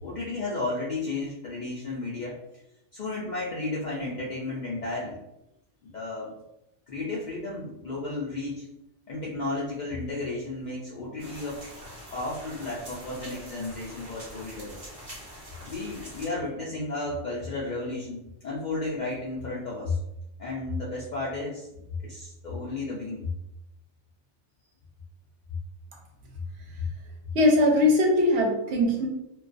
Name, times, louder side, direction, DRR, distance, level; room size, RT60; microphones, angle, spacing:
voice 1, 0.0-2.4 2.9-5.2 5.8-6.3 6.9-8.7 9.1-11.6 12.1-14.8 15.7-20.0 20.4-21.7 22.0-23.3 26.8-26.9, left 2 dB, 60° left, -6 dB, 0.5 m, -33 dB
sound 1, 11.2-16.3, equal, 35° right, 0.7 m, -44 dB
voice 2, 27.3-29.1, left 1 dB, 70° right, 0 dB, 0.8 m, -21 dB
2.2 x 2.2 x 2.5 m, 0.87 s
omnidirectional pair, 1.2 m